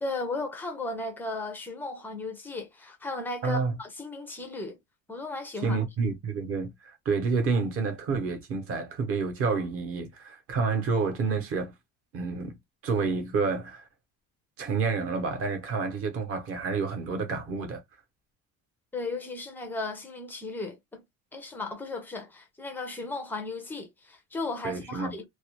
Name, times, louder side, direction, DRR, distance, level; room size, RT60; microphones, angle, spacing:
voice 1, 0.0-4.8 5.1-5.8 18.9-21.0 21.3-25.2, left 3 dB, 5° left, 0.3 m, -35 dB
voice 2, 3.4-3.7 5.6-11.7 12.1-12.6 12.8-13.9 14.6-17.8 24.6-25.2, right 4 dB, 40° right, 0.7 m, -29 dB
2.3 x 2.1 x 2.9 m
cardioid pair, 175°, 34 cm